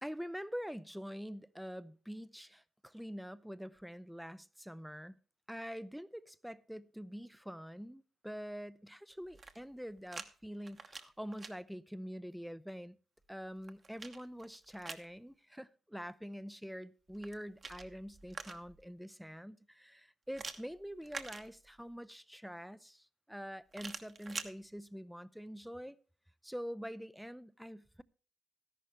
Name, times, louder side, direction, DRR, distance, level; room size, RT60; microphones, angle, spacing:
voice 1, 0.0-5.2 5.5-13.0 13.3-26.0 26.4-28.0, equal, ahead, 0.5 m, -45 dB
sound 1, 9.2-10.3 10.6-11.5 13.2-15.1 17.1-18.8 20.3-21.9 23.7-24.5, right 4 dB, 40° right, 1.1 m, -47 dB
13.0 x 11.0 x 3.2 m
cardioid pair, 90°, 0 cm